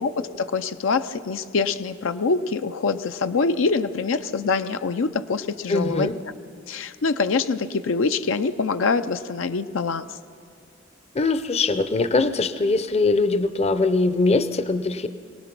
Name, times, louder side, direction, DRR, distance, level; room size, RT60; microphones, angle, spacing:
voice 1, 0.0-6.1 6.7-10.1, left 4 dB, 80° left, 10 dB, 0.6 m, -24 dB
voice 2, 5.7-6.1 11.1-15.1, left 3 dB, 35° left, 12 dB, 0.6 m, -22 dB
24.0 x 18.0 x 6.0 m, 2.4 s
head